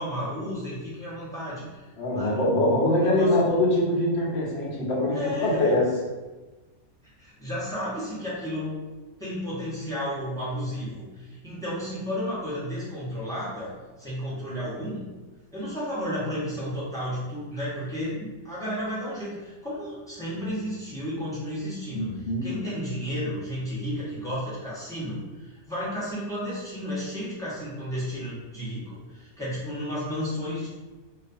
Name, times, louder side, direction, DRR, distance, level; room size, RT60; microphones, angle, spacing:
voice 1, 0.0-1.8 2.1-2.4 2.9-3.5 5.1-5.7 7.2-8.8 9.2-13.7 14.0-15.0 15.5-30.7, equal, 5° left, -10 dB, 0.3 m, -32 dB
voice 2, 2.0-5.9 21.9-22.5, left 1 dB, 60° left, -4 dB, 0.8 m, -23 dB
2.4 x 2.3 x 2.5 m, 1.2 s
omnidirectional pair, 1.5 m